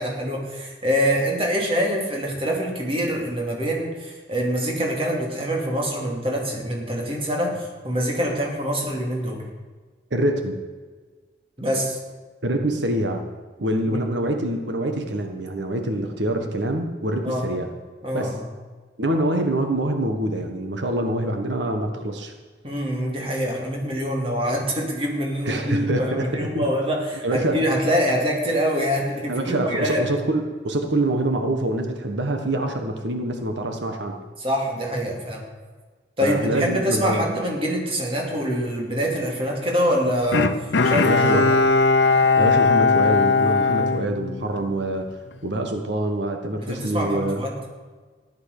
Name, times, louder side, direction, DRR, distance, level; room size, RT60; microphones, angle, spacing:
voice 1, 0.0-9.4 11.6-12.0 13.8-14.0 17.2-17.5 18.0-18.5 22.6-30.1 34.4-35.5 36.2-40.5 40.8-41.4 42.1-42.2 46.6-47.6, equal, 30° right, 0 dB, 2.7 m, -25 dB
voice 2, 10.1-10.6 12.4-13.2 13.6-17.7 18.1-18.4 19.0-22.3 25.4-26.6 27.2-27.6 29.3-34.2 36.2-37.2 41.0-41.5 42.4-45.1 45.4-47.4, right 1 dB, 85° right, 5 dB, 1.5 m, -25 dB
Bowed string instrument, 40.3-44.8 45.3-45.4, left 4 dB, 90° left, 0.8 m, -19 dB
15.0 x 11.5 x 6.7 m, 1.4 s
head